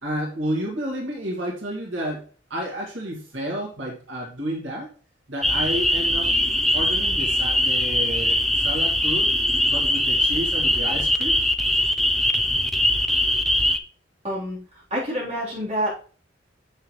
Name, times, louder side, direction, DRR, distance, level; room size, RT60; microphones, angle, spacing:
voice 1, 0.0-4.9 5.3-6.3 6.7-9.3 9.7-11.4, equal, 85° right, -2 dB, 2.2 m, -31 dB
sound 1, 5.4-13.8, left 1 dB, ahead, 0.5 m, -21 dB
voice 2, 14.2-14.6 14.9-15.9, equal, 35° right, -6 dB, 3.4 m, -27 dB
6.9 x 6.5 x 3.1 m, 0.40 s
head